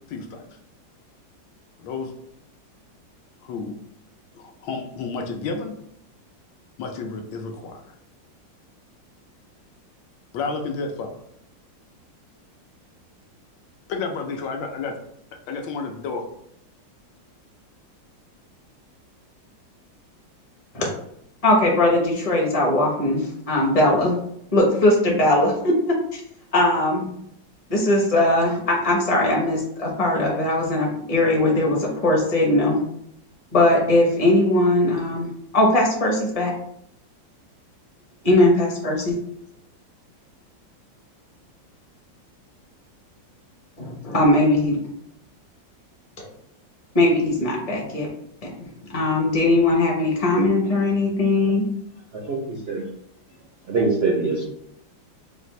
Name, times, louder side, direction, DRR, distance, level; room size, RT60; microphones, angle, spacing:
voice 1, 0.1-0.5 1.8-2.1 3.4-3.8 4.3-5.7 6.8-7.8 10.3-11.1 13.9-14.9 15.5-16.2, left 4 dB, 75° left, 3 dB, 1.3 m, -30 dB
voice 2, 21.4-24.1 24.5-25.9 26.5-27.1 27.7-32.8 33.5-35.3 35.5-36.5 38.2-39.2 43.8-44.8 46.2-46.3 46.9-48.1 48.4-51.6, left 1 dB, 35° left, -2 dB, 0.6 m, -20 dB
voice 3, 52.1-52.9 53.6-54.4, right 3 dB, 90° right, -1 dB, 0.5 m, -23 dB
4.7 x 2.5 x 3.1 m, 0.73 s
omnidirectional pair, 2.0 m